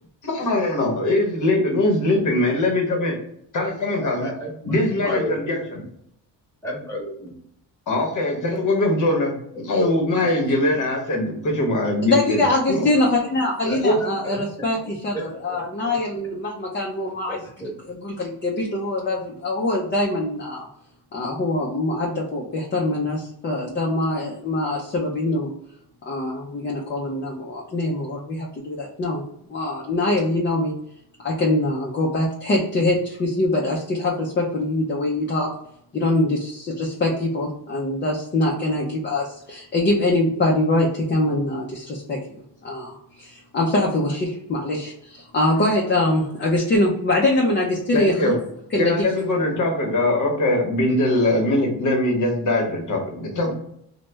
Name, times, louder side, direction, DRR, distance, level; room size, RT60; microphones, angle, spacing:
voice 1, 0.2-3.2 3.5-4.3 4.7-5.8 7.9-12.4 12.7-12.9 13.6-14.0 47.9-48.4 48.7-53.5, left 1 dB, 45° left, 0 dB, 0.9 m, -22 dB
voice 2, 3.9-4.8 5.0-5.3 6.6-7.4 9.5-9.6 10.1-10.3 13.7-13.8 14.2-14.4 17.3-17.7, equal, 5° left, -4 dB, 1.0 m, -32 dB
voice 3, 12.0-15.2 15.4-17.4 17.9-20.7 21.1-25.5 26.1-29.2 29.5-30.7 31.2-35.5 35.9-48.3 48.7-48.9, left 2 dB, 25° left, -2 dB, 0.4 m, -23 dB
3.1 x 2.1 x 3.2 m, 0.73 s
cardioid pair, 135°, 42 cm